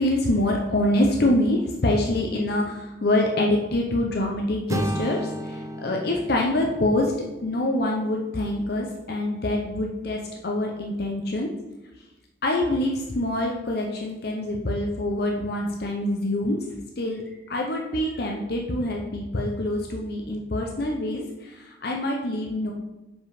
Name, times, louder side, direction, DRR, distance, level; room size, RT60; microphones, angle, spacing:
voice 1, 0.0-7.1 7.4-11.5 12.4-16.6 17.0-22.7, left 1 dB, 55° left, 0 dB, 0.7 m, -25 dB
sound 1, 4.7-8.7, equal, 15° right, 0.5 m, -34 dB
5.2 x 5.1 x 4.9 m, 1.0 s
head